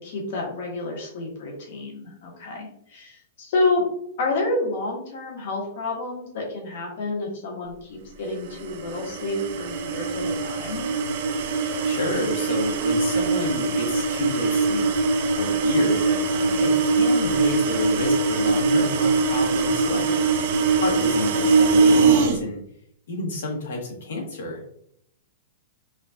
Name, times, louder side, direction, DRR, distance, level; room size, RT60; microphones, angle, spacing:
voice 1, 0.0-3.8 4.2-10.8, left 2 dB, 55° left, -2 dB, 1.3 m, -29 dB
sound 1, 8.5-22.4, right 4 dB, 45° right, 0.5 m, -22 dB
voice 2, 11.8-14.8 15.3-20.4 20.8-22.6 23.1-24.6, left 2 dB, 75° left, 0 dB, 1.4 m, -30 dB
5.0 x 2.7 x 2.4 m, 0.70 s
hypercardioid pair, 165°, 0 cm